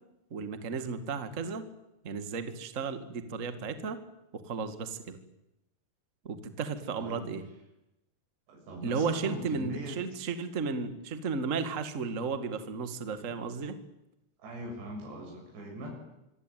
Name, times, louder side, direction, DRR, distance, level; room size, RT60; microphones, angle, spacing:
voice 1, 0.3-1.6 2.0-4.0 4.3-5.2 6.2-7.4 8.8-13.8, right 5 dB, 45° right, 10 dB, 1.0 m, -34 dB
voice 2, 8.5-10.0 14.4-15.9, equal, 75° right, 0 dB, 8.9 m, -40 dB
25.0 x 25.0 x 9.4 m, 0.90 s
omnidirectional pair, 5.0 m